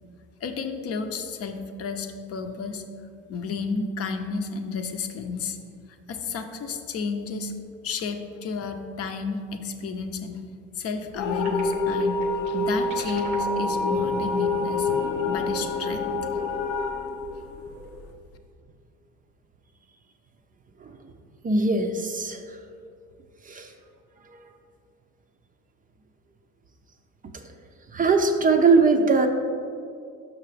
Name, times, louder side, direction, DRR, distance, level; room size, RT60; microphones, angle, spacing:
voice 1, 0.4-2.8 3.3-5.6 6.1-7.5 7.8-10.4 10.8-12.2 12.5-14.9 15.3-16.2, left 4 dB, 50° left, 6 dB, 0.7 m, -32 dB
sound 1, 11.1-18.1, left 3 dB, 90° left, 0.7 m, -27 dB
sound 2, 11.4-18.0, right 2 dB, 90° right, 0.8 m, -39 dB
voice 2, 21.4-22.4 23.5-23.7 27.9-29.3, right 4 dB, 25° right, 6 dB, 0.5 m, -20 dB
5.9 x 5.8 x 3.3 m, 2.4 s
supercardioid pair, 80°, 32 cm